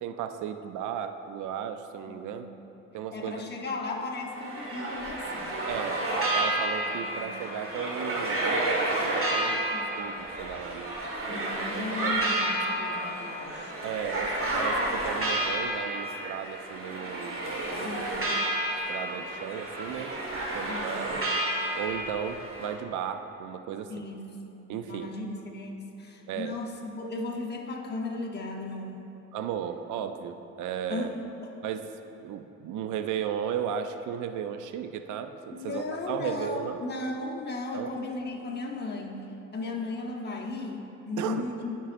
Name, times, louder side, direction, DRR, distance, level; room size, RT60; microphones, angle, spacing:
voice 1, 0.0-2.5 2.9-3.4 5.6-9.6 9.9-11.0 11.3-11.5 11.7-12.3 13.8-17.4 17.7-18.1 18.9-20.1 20.5-21.2 21.7-23.9 24.7-25.1 26.3-26.6 29.3-31.1 31.6-31.9 32.2-36.8 37.7-37.9 41.2-41.5, right 8 dB, 80° right, 8 dB, 0.5 m, -35 dB
voice 2, 2.1-2.4 3.1-5.6 6.8-7.3 9.7-9.9 11.3-13.7 17.8-18.2 20.7-21.0 23.9-29.1 30.9-31.1 31.4-31.6 35.5-39.2 39.5-41.8, left 3 dB, 35° left, 0 dB, 1.0 m, -36 dB
sound 1, 4.1-22.7, right 1 dB, 45° right, 1.7 m, -30 dB
12.0 x 5.4 x 2.5 m, 2.9 s
cardioid pair, 90°, 30 cm